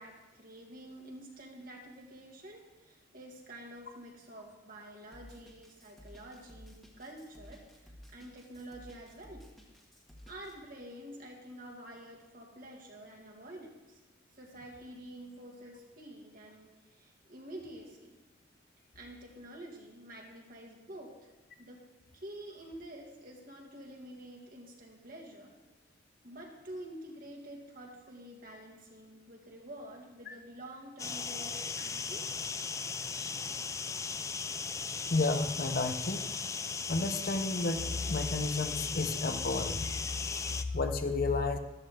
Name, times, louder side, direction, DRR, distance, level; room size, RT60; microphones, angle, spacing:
voice 1, 0.0-9.5 10.3-14.0 14.4-18.1 19.0-21.2 21.6-21.8 22.1-25.5 26.2-32.6, right 1 dB, 45° right, 0 dB, 2.3 m, -48 dB
Drum kit, 5.1-10.5, equal, ahead, 1.7 m, -54 dB
sound 1, 31.0-40.6, left 5 dB, 15° left, 0.3 m, -37 dB
voice 2, 35.1-36.3 36.9-41.6, left 3 dB, 50° left, 7 dB, 0.8 m, -32 dB
13.5 x 13.0 x 3.7 m, 1.1 s
head